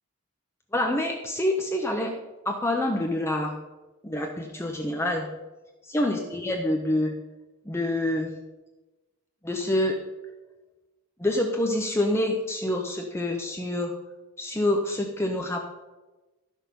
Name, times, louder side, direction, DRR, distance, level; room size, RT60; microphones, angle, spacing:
voice 1, 0.7-2.1 2.5-3.5 4.0-5.3 5.8-7.1 7.6-8.3 9.4-10.0 11.2-13.9 14.4-15.7, left 1 dB, 10° left, 2 dB, 0.7 m, -26 dB
11.5 x 6.3 x 5.3 m, 1.1 s
head